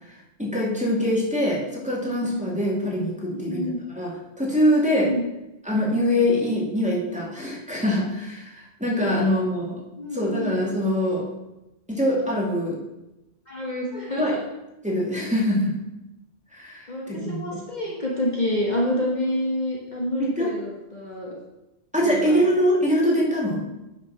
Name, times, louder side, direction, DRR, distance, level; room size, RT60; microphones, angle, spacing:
voice 1, 0.1-3.7 4.0-4.1 4.4-5.1 5.7-9.8 10.1-11.2 11.9-12.8 14.2-14.3 14.8-15.8 16.5-17.6 20.2-20.5 21.9-23.7, equal, 5° right, -5 dB, 2.2 m, -23 dB
voice 2, 3.3-3.8 4.9-5.2 9.2-9.3 10.0-10.5 13.5-14.4 16.9-21.4 22.0-22.4, left 1 dB, 35° left, -3 dB, 1.5 m, -28 dB
9.4 x 5.8 x 5.8 m, 0.97 s
omnidirectional pair, 1.3 m